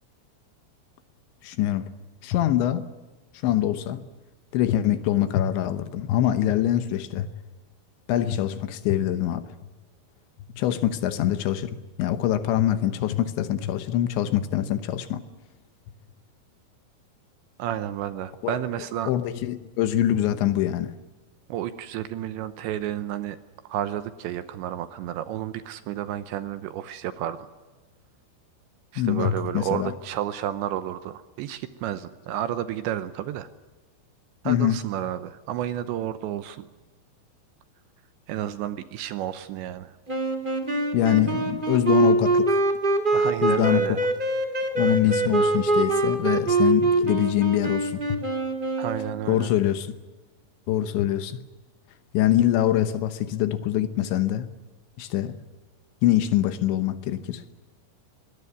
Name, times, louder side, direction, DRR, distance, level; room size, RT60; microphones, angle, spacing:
voice 1, 1.4-1.9 2.2-2.9 3.4-4.0 4.5-7.3 8.1-9.5 10.6-15.2 18.4-18.5 19.1-20.9 29.0-29.9 34.5-34.8 40.9-42.6 43.4-44.0 44.8-48.2 49.3-49.9 50.7-51.4 52.1-54.5 55.0-55.4 56.0-57.4, left 12 dB, 75° left, 3.1 m, -24 dB
voice 2, 17.6-19.1 21.5-23.4 23.7-27.4 28.9-33.5 34.4-36.7 38.3-39.9 43.1-44.0 44.8-45.5 48.8-49.5, right 11 dB, 75° right, 2.8 m, -31 dB
sound 1, 40.1-49.3, right 2 dB, 35° right, 0.8 m, -24 dB
23.0 x 19.5 x 9.5 m
omnidirectional pair, 5.8 m